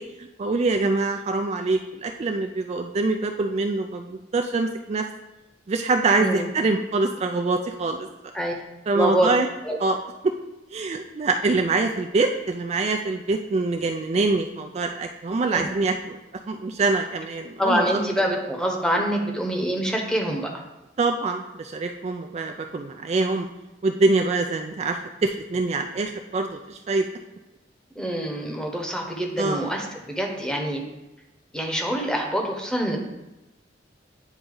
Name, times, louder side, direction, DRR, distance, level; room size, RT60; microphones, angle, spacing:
voice 1, 0.0-5.0 5.7-8.1 8.9-9.5 9.8-10.0 10.2-10.3 10.7-16.2 16.5-18.0 21.0-23.5 23.8-27.0 29.4-29.7, right 3 dB, 35° right, 5 dB, 0.3 m, -24 dB
voice 2, 8.9-9.3 9.6-9.8 15.5-15.6 17.6-20.5 28.0-30.8 31.5-33.0, equal, 5° left, 1 dB, 1.0 m, -25 dB
9.4 x 4.0 x 3.8 m, 1.0 s
head